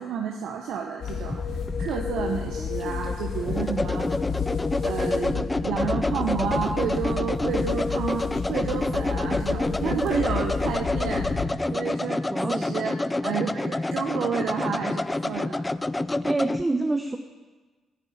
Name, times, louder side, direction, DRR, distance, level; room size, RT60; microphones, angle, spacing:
voice 1, 0.0-1.4 1.8-4.1 4.8-15.6, right 7 dB, 80° right, 2 dB, 1.1 m, -30 dB
sound 1, 1.0-11.5, left 6 dB, 70° left, 1.9 m, -31 dB
sound 2, 1.3-16.6, left 2 dB, 15° left, 0.4 m, -28 dB
voice 2, 12.3-12.7 16.2-17.2, right 2 dB, 20° right, 6 dB, 0.9 m, -26 dB
10.0 x 9.9 x 9.3 m, 1.3 s
cardioid pair, 90°, 0 cm